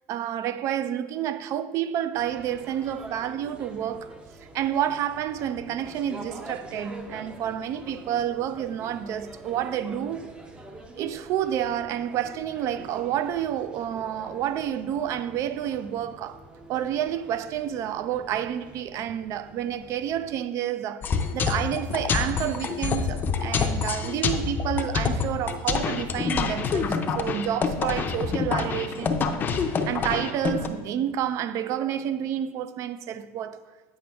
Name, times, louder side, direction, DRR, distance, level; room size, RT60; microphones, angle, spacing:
voice 1, 0.1-4.1 4.5-10.3 11.0-16.4 16.7-21.1 21.3-29.3 29.6-33.6, right 10 dB, 45° right, 0.4 m, -29 dB
sound 1, 2.1-20.4, right 2 dB, 15° right, 0.7 m, -45 dB
sound 2, 21.0-30.7, left 5 dB, 25° left, 0.5 m, -27 dB
8.8 x 5.0 x 3.5 m
supercardioid pair, 120°, 7 cm